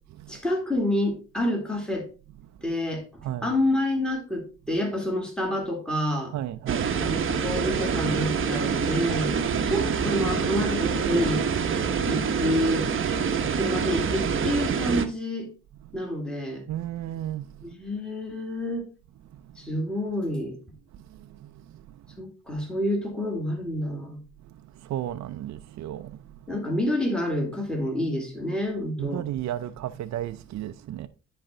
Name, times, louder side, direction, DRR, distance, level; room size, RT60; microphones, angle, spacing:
voice 1, 0.3-2.1 2.6-3.0 3.4-6.3 7.0-9.3 9.7-11.4 12.1-12.9 13.5-15.5 15.9-16.6 17.6-18.9 19.6-20.6 22.2-24.2 26.5-29.2, left 1 dB, 5° left, 2.6 m, -28 dB
voice 2, 6.3-7.0 13.3-13.5 16.7-17.5 21.1-21.8 24.8-26.2 29.0-31.1, right 12 dB, 65° right, 0.6 m, -34 dB
sound 1, 6.7-15.1, right 6 dB, 45° right, 0.9 m, -26 dB
10.0 x 4.4 x 3.8 m
cardioid pair, 90°, 30 cm